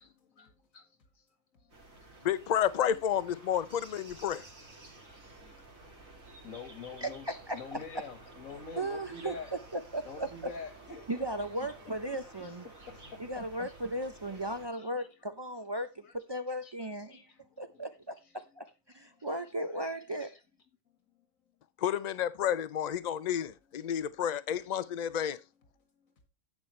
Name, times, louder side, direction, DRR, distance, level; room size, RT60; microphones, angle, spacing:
voice 1, 0.2-1.2 1.5-2.1 4.1-4.2 4.8-5.7 6.4-7.3 7.5-9.5 10.0-11.3 11.6-13.2 13.6-13.7 14.7-15.1 16.0-16.1 16.6-16.7 17.1-17.8 19.1-19.3 19.7-19.8 20.2-20.4, left 5 dB, 80° left, 2.2 m, -47 dB
sound 1, 1.7-14.7, right 2 dB, 85° right, 3.1 m, -53 dB
voice 2, 2.2-4.4 21.8-25.4, left 9 dB, 50° left, 0.5 m, -31 dB
voice 3, 7.0-8.0 8.8-10.3 11.1-12.7 13.2-17.2 17.6-18.7 18.9-20.4, right 1 dB, 40° right, 0.3 m, -36 dB
10.5 x 8.4 x 3.2 m
omnidirectional pair, 1.4 m